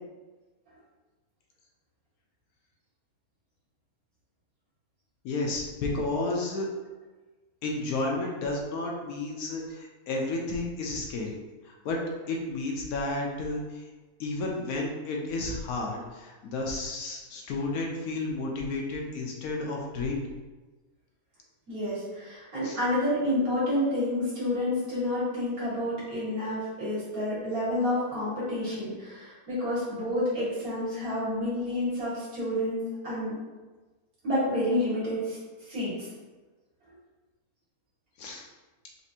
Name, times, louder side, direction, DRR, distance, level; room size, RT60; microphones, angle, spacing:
voice 1, 5.2-6.7 7.6-11.4 11.6-12.0 12.3-13.8 14.2-20.2 22.6-22.8 38.2-38.4, left 2 dB, 75° left, -1 dB, 1.0 m, -32 dB
voice 2, 21.7-33.4 34.2-35.4 35.7-36.1, left 1 dB, 65° right, -9 dB, 2.0 m, -29 dB
4.2 x 2.5 x 2.7 m, 1.2 s
omnidirectional pair, 1.7 m